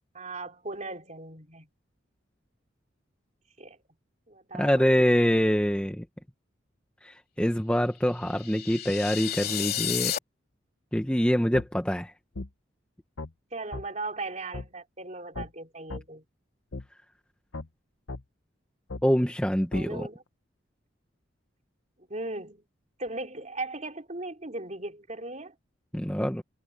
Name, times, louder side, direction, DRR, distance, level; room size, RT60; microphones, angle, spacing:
voice 1, 0.1-1.7 3.6-3.8 4.3-4.9 13.5-16.2 19.7-20.2 22.1-22.6 23.0-25.5, right 2 dB, 35° right, 4.3 m, -38 dB
voice 2, 4.5-6.0 7.0-10.1 10.9-12.1 19.0-20.1 25.9-26.4, equal, 5° left, 1.1 m, -25 dB
sound 1, 8.2-10.2, left 11 dB, 50° left, 3.8 m, -31 dB
sound 2, 11.5-11.7 12.3-12.5 13.2-13.3 13.7-13.9 14.5-14.7 15.3-15.5 15.9-16.0 16.7-16.8 17.5-17.7 18.1-18.2 18.9-19.0 19.7-19.9, left 2 dB, 85° left, 1.0 m, -36 dB
head